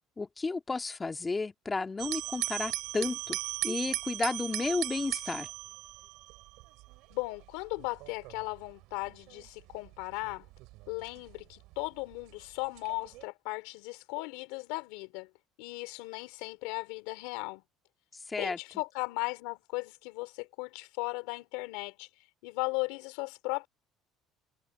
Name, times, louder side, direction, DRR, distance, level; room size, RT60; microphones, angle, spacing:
voice 1, 0.2-5.5 18.3-18.6, left 3 dB, 20° left, 2.0 m, -33 dB
sound 1, 2.0-12.1 12.8-13.2, right 21 dB, 80° right, 4.2 m, -38 dB
voice 2, 7.1-10.5 10.9-15.3 15.6-17.6 18.4-22.1 22.4-23.7, left 25 dB, 90° left, 3.6 m, -37 dB
cardioid pair, 110°, 0 cm